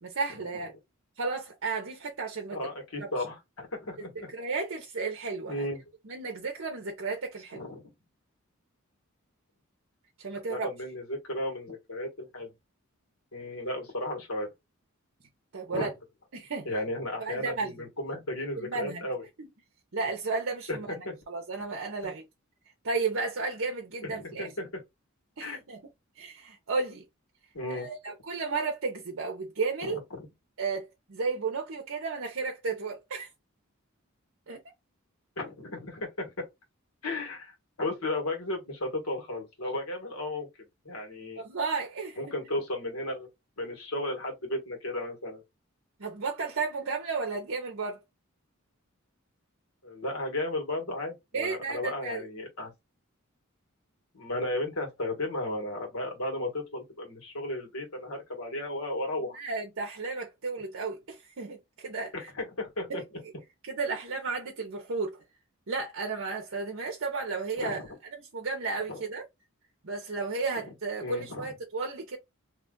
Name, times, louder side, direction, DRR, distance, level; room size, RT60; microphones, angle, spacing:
voice 1, 0.0-0.7 1.2-2.6 4.3-5.7 6.1-7.6 10.2-10.7 15.5-15.9 16.3-16.7 17.2-17.7 18.6-19.1 19.4-19.5 19.9-20.9 21.3-22.2 22.8-24.5 25.4-25.8 26.2-27.0 27.7-30.0 30.6-33.3 34.5-34.6 41.4-42.2 46.0-48.0 51.3-52.2 59.3-62.3 62.9-63.0 63.7-65.2 65.7-67.8 68.2-69.2 69.8-72.2, right 4 dB, 60° right, 0.7 m, -33 dB
voice 2, 2.5-4.3 5.5-5.8 7.5-7.9 10.5-12.5 13.3-14.5 15.7-15.9 16.6-19.2 20.7-21.2 22.0-22.1 24.0-24.8 25.4-25.6 27.5-27.9 29.8-30.3 35.4-36.3 37.0-40.5 40.8-41.4 42.2-43.3 43.6-45.4 49.8-52.7 54.1-59.4 62.1-63.2 67.6-67.9 68.9-69.0 70.5-70.7 71.0-71.5, left 1 dB, 80° left, 1.6 m, -34 dB
2.9 x 2.4 x 3.7 m
head